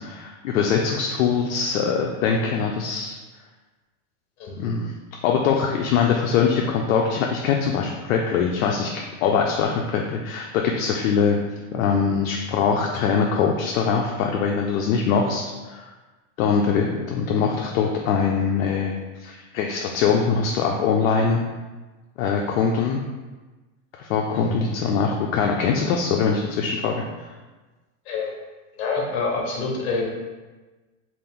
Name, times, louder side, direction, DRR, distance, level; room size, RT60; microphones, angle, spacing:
voice 1, 0.0-3.1 4.6-4.9 5.2-8.9 9.2-11.4 11.7-15.9 16.4-18.9 19.2-21.4 22.2-23.0 24.0-27.3, left 6 dB, 70° left, 1 dB, 0.5 m, -22 dB
voice 2, 24.3-24.7 28.0-28.3 28.8-30.0, left 3 dB, 50° left, -1 dB, 1.0 m, -27 dB
3.5 x 2.5 x 3.5 m, 1.2 s
supercardioid pair, 175°, 42 cm